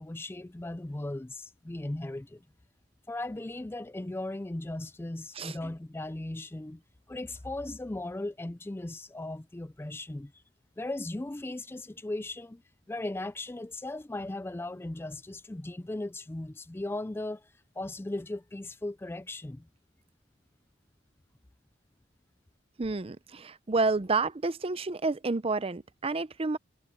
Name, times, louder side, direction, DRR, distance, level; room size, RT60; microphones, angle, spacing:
voice 1, 0.0-2.4 3.1-6.8 7.1-10.3 10.8-12.6 12.9-17.5 17.8-19.7, left 2 dB, 15° left, 0.4 m, -37 dB
voice 2, 22.8-26.6, right 3 dB, 30° right, 0.6 m, -29 dB
head